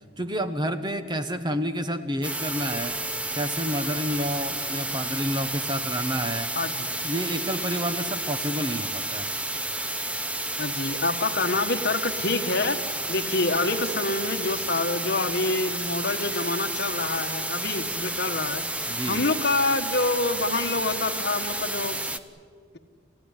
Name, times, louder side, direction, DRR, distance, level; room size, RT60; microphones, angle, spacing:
voice 1, 0.2-2.9 3.3-6.5 7.0-9.3 18.9-19.2, equal, 25° right, 9 dB, 1.1 m, -29 dB
sound 1, 2.2-22.2, right 2 dB, 5° right, 0.7 m, -31 dB
voice 2, 6.5-6.9 10.6-18.7 19.0-22.0, left 3 dB, 55° left, 8 dB, 1.4 m, -27 dB
27.5 x 16.0 x 9.9 m, 2.1 s
head